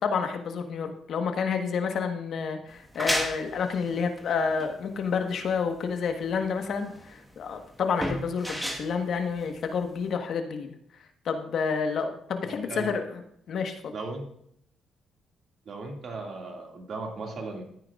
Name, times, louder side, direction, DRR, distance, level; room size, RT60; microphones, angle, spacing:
voice 1, 0.0-10.7 11.2-13.2 13.5-13.9, left 5 dB, 65° left, 5 dB, 1.3 m, -29 dB
sound 1, 2.7-10.1, equal, 5° right, 1.5 m, -34 dB
voice 2, 12.4-12.9 13.9-14.2 15.7-17.6, right 3 dB, 55° right, 2 dB, 2.2 m, -37 dB
13.5 x 9.4 x 2.5 m, 0.72 s
cardioid pair, 90°, 0 cm